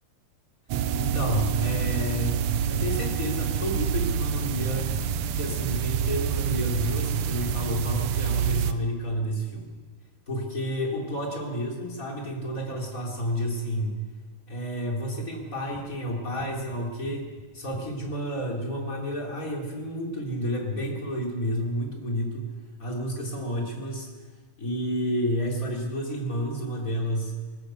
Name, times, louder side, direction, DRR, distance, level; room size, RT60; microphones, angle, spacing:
sound 1, 0.7-8.7, right 7 dB, 75° right, 1.8 m, -27 dB
voice 1, 0.9-4.9 5.3-9.7 10.3-13.9 14.5-17.3 17.5-22.5 22.8-24.1 24.6-27.3, equal, 25° left, -1 dB, 4.2 m, -30 dB
sound 2, 15.4-18.2, left 2 dB, 65° left, 5.4 m, -49 dB
21.5 x 19.5 x 6.6 m, 1.4 s
omnidirectional pair, 3.6 m